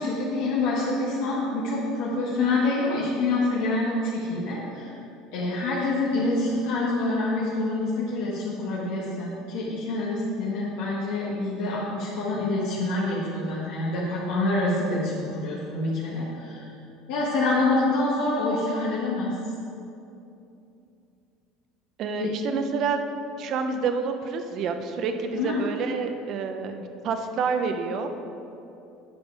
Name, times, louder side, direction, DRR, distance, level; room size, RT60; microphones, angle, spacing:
voice 1, 0.0-4.9 5.3-16.7 17.1-19.3 22.2-22.3 25.3-25.6, left 2 dB, 70° left, -7 dB, 1.6 m, -26 dB
voice 2, 22.0-23.1 23.4-28.1, right 5 dB, 40° right, 7 dB, 0.7 m, -28 dB
9.6 x 7.1 x 4.8 m, 2.8 s
cardioid pair, 165°, 0 cm